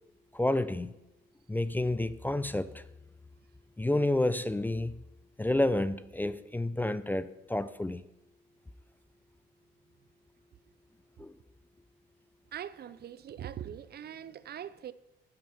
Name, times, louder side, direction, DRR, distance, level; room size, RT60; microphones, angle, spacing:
voice 1, 0.3-0.9 1.5-2.8 3.8-5.0 5.4-8.0 11.2-11.3, left 1 dB, 10° left, 0.4 m, -30 dB
voice 2, 12.5-14.9, right 10 dB, 55° right, 0.5 m, -42 dB
9.8 x 7.9 x 7.1 m
cardioid pair, 90°, 20 cm